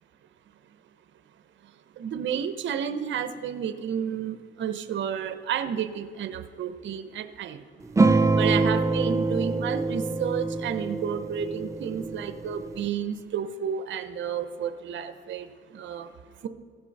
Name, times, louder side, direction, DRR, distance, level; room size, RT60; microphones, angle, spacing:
voice 1, 2.0-7.6 8.3-16.1 16.4-16.5, right 8 dB, 70° right, 10 dB, 0.8 m, -31 dB
sound 1, 8.0-12.9, right 3 dB, 15° right, 0.5 m, -25 dB
16.0 x 6.1 x 5.4 m, 2.1 s
cardioid pair, 90°, 20 cm